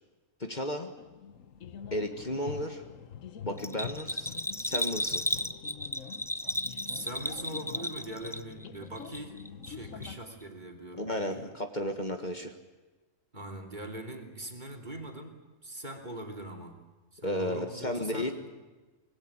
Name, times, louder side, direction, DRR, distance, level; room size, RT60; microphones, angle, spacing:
voice 1, 0.4-0.9 1.9-2.8 3.4-4.3 4.6-5.2 11.0-12.5 17.2-18.4, left 1 dB, 35° left, 5 dB, 1.7 m, -33 dB
sound 1, 1.0-10.2, left 8 dB, 80° left, 1.4 m, -45 dB
Bell, 3.6-8.7 9.0-9.7 10.0-10.1, left 1 dB, 5° left, 0.5 m, -34 dB
voice 2, 6.9-11.5 13.3-16.8 17.1-18.5, right 1 dB, 35° right, 2 dB, 3.3 m, -42 dB
25.0 x 19.5 x 8.7 m, 1.2 s
omnidirectional pair, 1.3 m